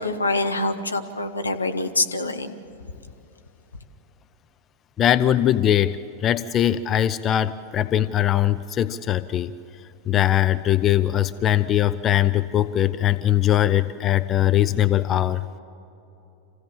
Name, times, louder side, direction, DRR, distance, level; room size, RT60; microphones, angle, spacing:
voice 1, 0.0-2.5, left 2 dB, 80° left, 5 dB, 1.2 m, -25 dB
voice 2, 5.0-9.5 10.1-15.4, left 11 dB, 30° left, 13 dB, 0.5 m, -21 dB
27.0 x 16.0 x 7.2 m, 2.9 s
figure-of-eight pair, 90°, 0 cm